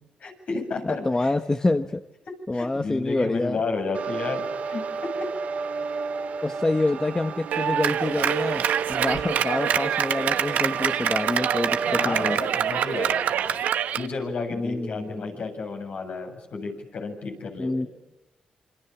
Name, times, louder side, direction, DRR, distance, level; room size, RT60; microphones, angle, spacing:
voice 1, 0.2-1.3 2.5-5.3 11.8-13.6 13.9-17.9, left 4 dB, 65° left, 2 dB, 7.9 m, -32 dB
voice 2, 0.8-2.0 2.5-3.6 6.4-12.4 14.5-15.3 17.6-17.9, left 2 dB, 25° left, 8 dB, 1.3 m, -27 dB
sound 1, 3.9-12.3, right 5 dB, 70° right, 2.9 m, -32 dB
Clapping, 7.5-14.1, right 9 dB, 85° right, 1.2 m, -25 dB
27.5 x 25.5 x 7.3 m, 1.0 s
cardioid pair, 65°, 3 cm